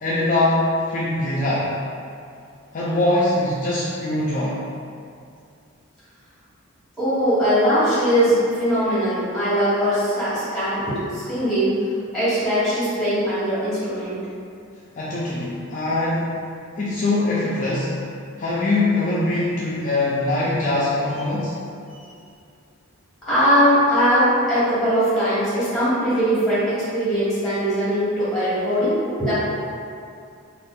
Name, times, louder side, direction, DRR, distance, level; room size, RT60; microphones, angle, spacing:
voice 1, 0.0-1.7 2.7-4.6 15.0-16.3 16.8-17.9 18.4-21.5, left 2 dB, 35° left, -8 dB, 0.3 m, -22 dB
voice 2, 7.0-11.8 12.1-14.2 21.9-22.0 23.2-29.3, equal, ahead, -13 dB, 1.4 m, -20 dB
2.6 x 2.4 x 3.6 m, 2.4 s
head